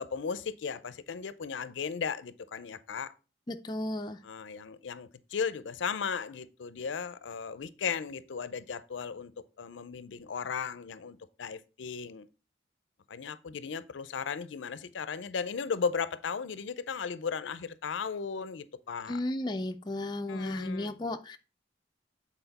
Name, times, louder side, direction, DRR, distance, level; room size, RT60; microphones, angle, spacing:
voice 1, 0.0-3.1 4.2-9.3 9.6-12.3 13.1-19.2 20.3-20.9, left 6 dB, 80° left, 0.5 m, -36 dB
voice 2, 3.5-4.2 19.1-21.4, left 1 dB, 20° left, 0.4 m, -34 dB
7.9 x 4.2 x 4.0 m
head